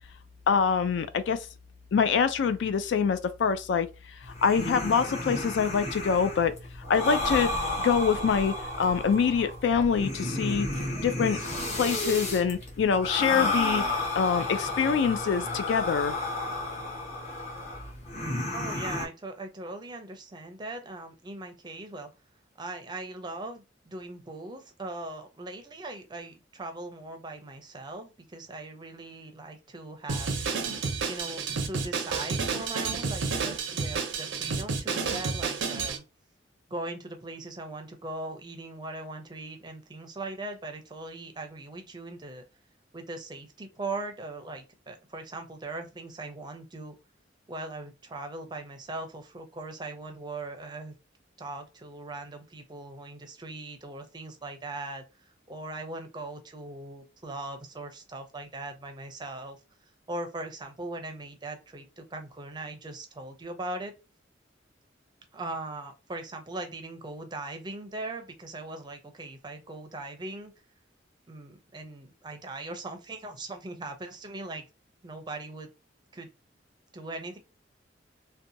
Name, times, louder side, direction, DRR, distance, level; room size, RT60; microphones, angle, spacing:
voice 1, 0.5-1.5 1.9-3.9 4.4-6.5 6.9-7.5 7.8-10.7 11.0-11.4 11.7-13.8 14.2-16.2, left 6 dB, 75° left, 0.3 m, -25 dB
sound 1, 4.2-19.1, left 2 dB, 40° left, 0.9 m, -32 dB
voice 2, 18.5-22.1 22.6-30.3 31.0-36.0 36.7-42.4 42.9-46.9 47.5-50.9 51.4-59.6 60.1-63.9 65.3-70.5 71.3-74.7 75.0-75.7 76.1-76.3 76.9-77.4, right 2 dB, 25° right, 0.5 m, -40 dB
Drum kit, 30.1-36.0, right 4 dB, 85° right, 0.5 m, -30 dB
2.7 x 2.2 x 2.5 m
head